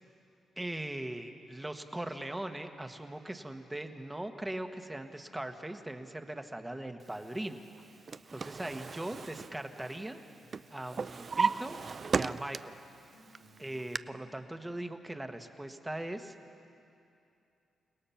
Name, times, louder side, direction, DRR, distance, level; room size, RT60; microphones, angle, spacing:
voice 1, 0.6-7.6 8.3-10.2 10.7-11.8 12.1-12.8 13.6-16.3, right 1 dB, 15° right, 6 dB, 1.5 m, -40 dB
Acoustic guitar, 6.4-14.4, left 1 dB, 90° left, 3.4 m, -64 dB
Drawer open or close, 7.8-10.2 10.5-12.9 13.3-14.0, right 5 dB, 45° right, 0.4 m, -35 dB
30.0 x 17.5 x 5.8 m, 2.6 s
cardioid pair, 75°, 0 cm